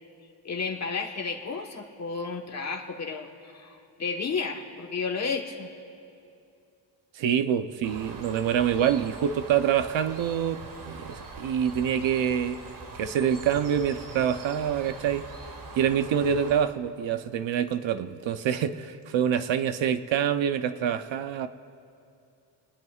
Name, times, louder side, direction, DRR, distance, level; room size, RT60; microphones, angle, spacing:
voice 1, 0.4-5.7, left 5 dB, 35° left, 2 dB, 1.4 m, -32 dB
voice 2, 7.2-12.6 13.0-15.3 15.7-21.5, right 9 dB, 80° right, 10 dB, 0.8 m, -26 dB
Bird, 7.8-16.6, right 3 dB, 45° right, 1.6 m, -42 dB
29.0 x 20.0 x 2.4 m, 2.6 s
wide cardioid pair, 160°, 45 cm